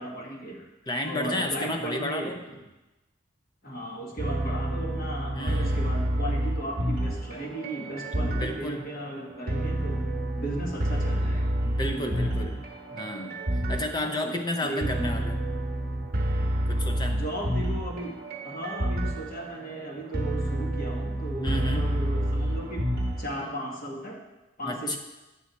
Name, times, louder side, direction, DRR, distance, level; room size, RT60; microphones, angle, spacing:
voice 1, 0.0-0.7 1.0-2.6 3.6-10.1 10.4-11.5 11.9-12.3 13.9-14.9 17.1-18.2 18.4-22.8 23.2-24.2 24.6-25.0, right 1 dB, 45° left, 0 dB, 1.4 m, -36 dB
voice 2, 0.9-2.4 5.3-5.9 8.2-8.8 11.6-12.6 12.9-15.4 16.7-17.2 21.4-21.9 24.6-25.0, left 1 dB, 20° left, 4 dB, 0.4 m, -32 dB
sound 1, 4.2-23.5, right 1 dB, 45° right, 0.9 m, -29 dB
8.9 x 6.2 x 4.0 m, 1.0 s
head